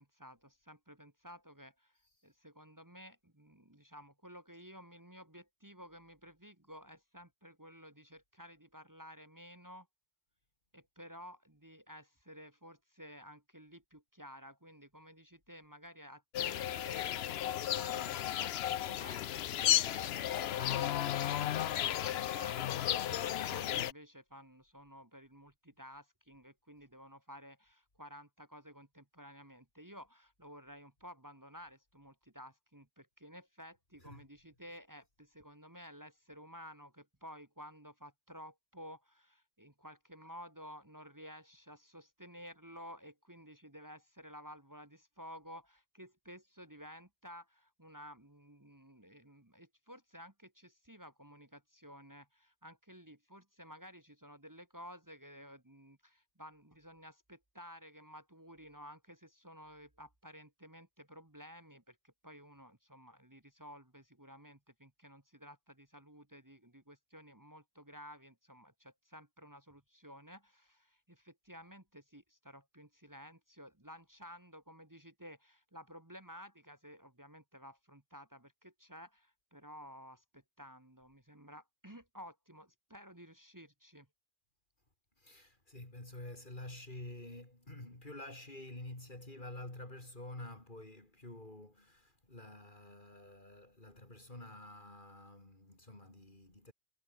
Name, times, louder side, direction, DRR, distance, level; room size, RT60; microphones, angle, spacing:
voice 1, 0.0-2.0 2.2-9.9 10.7-84.1, equal, 15° right, 1.8 m, -54 dB
sound 1, 16.3-23.9, left 11 dB, 70° left, 0.9 m, -34 dB
voice 2, 85.2-96.7, left 1 dB, 45° left, 4.6 m, -49 dB
omnidirectional pair, 1.1 m